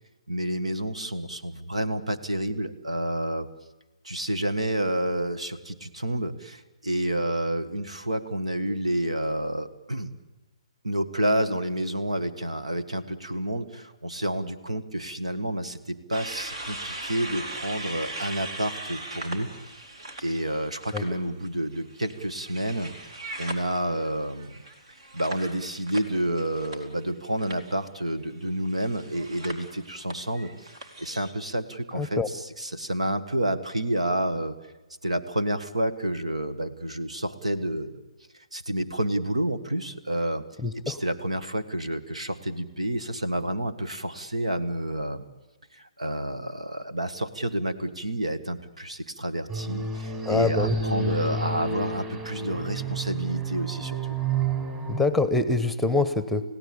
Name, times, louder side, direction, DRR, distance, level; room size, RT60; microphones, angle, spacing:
voice 1, 0.3-3.5 4.0-10.1 10.8-19.5 20.2-24.5 25.1-30.5 31.0-34.6 35.0-38.0 38.5-40.5 40.8-45.3 45.7-54.1, right 1 dB, 85° right, 10 dB, 1.7 m, -29 dB
sound 1, 16.1-21.0 21.4-27.1 27.4-27.7 28.6-31.3, right 2 dB, 60° right, 3.7 m, -39 dB
voice 2, 31.9-32.3 40.6-41.0 50.3-50.7 54.9-56.4, left 3 dB, ahead, 14 dB, 1.0 m, -25 dB
sound 2, 49.5-55.0, right 4 dB, 20° right, 5.0 m, -30 dB
29.5 x 16.5 x 8.6 m, 1.1 s
figure-of-eight pair, 135°, 3 cm